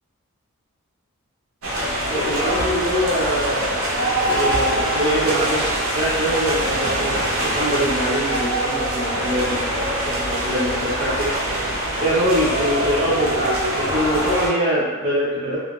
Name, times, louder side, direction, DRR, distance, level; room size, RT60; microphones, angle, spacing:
sound 1, 1.6-14.5, right 1 dB, 65° right, 0.6 m, -23 dB
voice 1, 2.0-11.3 12.0-15.6, equal, 25° right, -8 dB, 0.6 m, -23 dB
2.3 x 2.0 x 2.9 m, 1.4 s
head